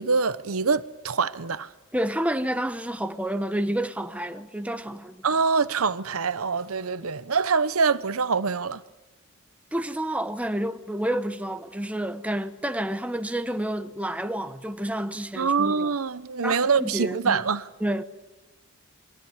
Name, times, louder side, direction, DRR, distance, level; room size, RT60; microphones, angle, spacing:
voice 1, 0.0-1.7 5.2-8.8 15.4-17.7, right 5 dB, 80° right, 0.9 m, -24 dB
voice 2, 1.9-5.2 9.7-15.9 16.4-17.4 17.8-18.0, right 1 dB, 5° right, 1.0 m, -29 dB
27.5 x 23.0 x 8.1 m
head